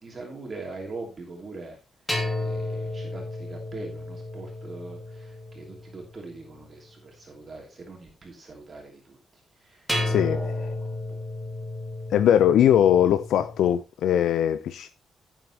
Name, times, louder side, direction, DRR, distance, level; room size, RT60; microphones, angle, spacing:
voice 1, 0.0-1.8 2.4-9.2 9.7-10.9, right 3 dB, 30° right, 2.9 m, -42 dB
sound 1, 2.1-6.4 9.9-13.7, left 2 dB, 5° left, 2.7 m, -32 dB
voice 2, 10.0-10.5 12.1-14.9, left 10 dB, 90° left, 0.7 m, -21 dB
16.0 x 7.5 x 3.0 m
cardioid pair, 130°, 0 cm